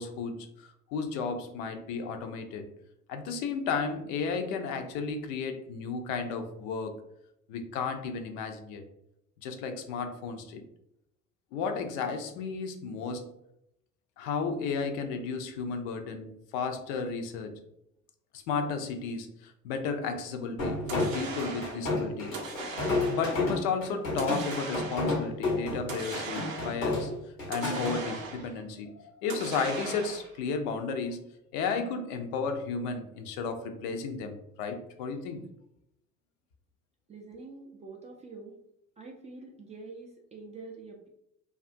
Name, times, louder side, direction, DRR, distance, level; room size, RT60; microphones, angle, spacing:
voice 1, 0.0-2.7 3.1-7.0 7.5-8.8 9.4-10.6 11.5-13.3 14.2-17.6 18.5-22.4 23.1-27.1 27.5-31.2 31.5-35.4, left 5 dB, 60° left, 7 dB, 0.5 m, -33 dB
sound 1, 20.6-28.0, left 2 dB, 90° left, 0.9 m, -31 dB
sound 2, 20.9-21.9 22.3-23.4 24.2-25.2 25.9-26.9 27.5-28.6 29.3-30.4, right 3 dB, 90° right, 0.5 m, -39 dB
voice 2, 37.1-38.6 39.0-41.1, right 3 dB, 20° right, 0 dB, 0.3 m, -46 dB
2.4 x 2.3 x 2.5 m, 0.81 s
figure-of-eight pair, 60°, 39 cm